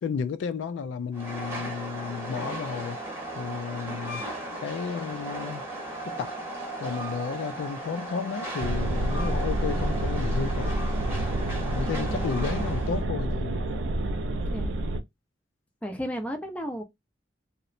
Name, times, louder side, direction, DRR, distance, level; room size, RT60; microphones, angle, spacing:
voice 1, 0.0-3.0 3.4-4.2 4.6-5.6 6.2-6.4 6.8-10.7 11.7-13.6, left 6 dB, 80° left, 0.3 m, -32 dB
Train, 1.1-13.0, right 1 dB, 10° right, 0.8 m, -36 dB
sound 1, 8.6-15.0, right 1 dB, 80° right, 0.4 m, -28 dB
voice 2, 11.8-12.3 14.5-14.7 15.8-16.8, equal, 5° left, 0.4 m, -34 dB
2.9 x 2.1 x 2.4 m
head